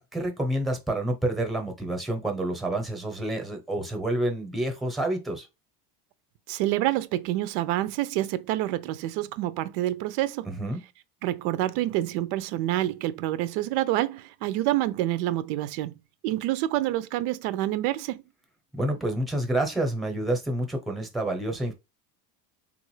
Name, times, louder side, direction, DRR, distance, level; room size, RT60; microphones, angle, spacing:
voice 1, 0.0-5.5 10.5-10.8 18.7-21.7, right 1 dB, ahead, 0.8 m, -28 dB
voice 2, 6.5-10.5 11.2-15.9 16.2-18.2, right 15 dB, 75° right, 0.5 m, -27 dB
3.6 x 2.4 x 3.1 m
cardioid pair, 120°, 43 cm